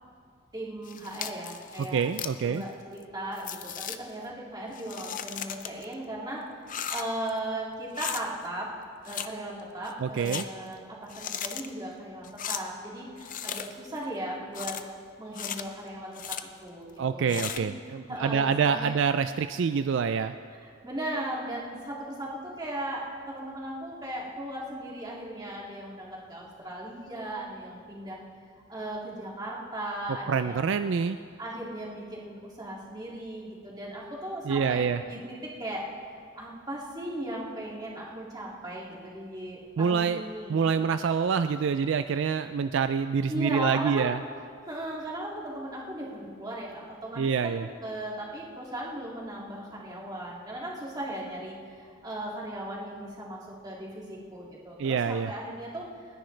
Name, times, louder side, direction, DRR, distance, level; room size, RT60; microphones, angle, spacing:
voice 1, 0.5-2.0 2.4-6.4 6.9-8.7 9.0-14.8 15.2-17.7 18.1-18.9 20.5-28.2 28.7-30.8 31.4-35.9 36.4-40.9 43.3-44.1 44.7-55.9, right 1 dB, 20° right, -4 dB, 2.4 m, -37 dB
sound 1, 0.9-2.4 3.0-3.1 3.4-4.0 4.7-5.9 6.7-7.3 7.9-8.2 9.0-9.3 9.6-10.4 11.1-11.7 12.2-12.6 13.2-13.9 14.5-14.8 15.3-15.6 16.1-16.4 17.3-17.6, left 9 dB, 40° left, 0.6 m, -36 dB
voice 2, 1.9-2.6 10.0-10.4 17.0-20.3 30.3-31.2 34.5-35.0 39.8-40.2 40.5-44.2 47.2-47.7 54.8-55.3, right 6 dB, 60° right, 10 dB, 0.3 m, -26 dB
30.0 x 10.0 x 3.3 m, 2.2 s
head